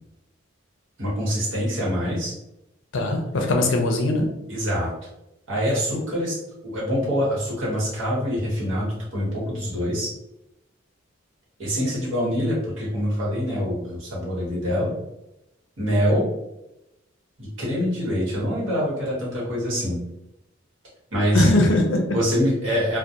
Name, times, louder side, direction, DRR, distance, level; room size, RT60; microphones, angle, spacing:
voice 1, 1.0-2.3 4.5-4.9 5.5-6.4 6.6-10.1 11.6-15.0 15.8-16.2 17.4-20.0 21.1-21.5 22.1-23.0, equal, 70° right, -6 dB, 1.1 m, -25 dB
voice 2, 2.9-4.3 21.3-22.0, left 2 dB, 65° left, 3 dB, 0.5 m, -20 dB
2.3 x 2.1 x 2.7 m, 0.88 s
head